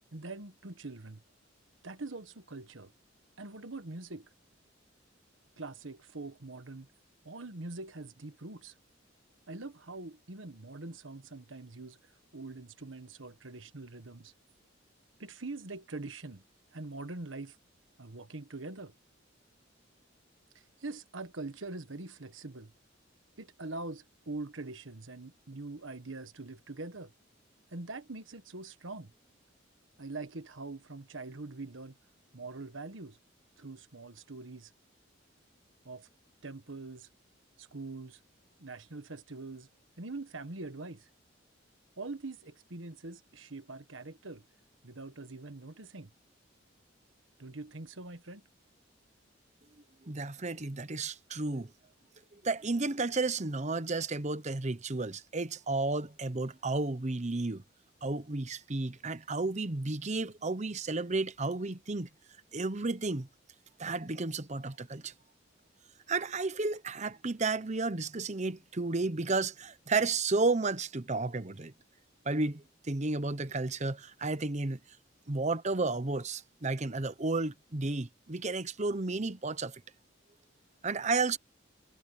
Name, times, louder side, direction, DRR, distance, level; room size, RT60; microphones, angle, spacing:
voice 1, 0.1-1.2 1.8-2.9 3.4-4.3 5.6-6.9 7.2-8.7 9.5-12.0 12.3-14.3 15.2-16.4 16.7-17.6 18.0-18.9 20.8-22.7 23.4-27.1 27.7-29.1 30.0-32.0 32.3-33.2 33.6-34.7 35.8-36.1 36.4-37.1 37.6-38.2 38.6-39.7 40.0-41.1 42.0-44.4 44.8-46.1 47.4-48.4, right 3 dB, 85° right, 1.4 m, -43 dB
voice 2, 50.1-51.7 52.3-57.6 58.0-62.1 62.5-63.3 63.8-65.1 66.1-71.7 72.2-74.8 75.3-79.8 80.8-81.4, right 3 dB, 35° right, 1.0 m, -32 dB
head